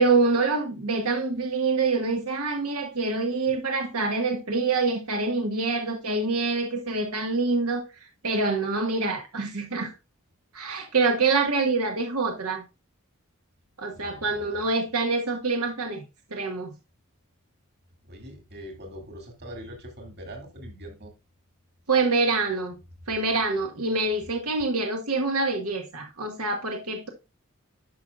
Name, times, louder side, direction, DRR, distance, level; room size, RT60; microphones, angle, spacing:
voice 1, 0.0-7.8 8.2-9.9 10.5-12.6 13.8-16.0 16.3-16.7 21.9-22.8 23.1-27.1, right 3 dB, 90° right, 1.6 m, -25 dB
voice 2, 14.0-14.7 18.0-21.1, equal, 45° right, 2.5 m, -42 dB
11.0 x 5.8 x 2.4 m
head